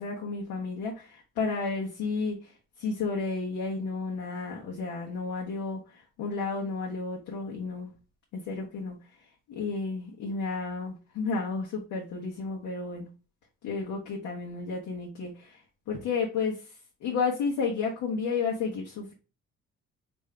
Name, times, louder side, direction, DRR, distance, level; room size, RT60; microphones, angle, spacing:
voice 1, 0.0-7.9 8.3-9.0 9.5-13.1 13.6-19.1, left 4 dB, 90° left, -3 dB, 0.9 m, -32 dB
3.7 x 2.6 x 3.3 m, 0.35 s
cardioid pair, 90°, 30 cm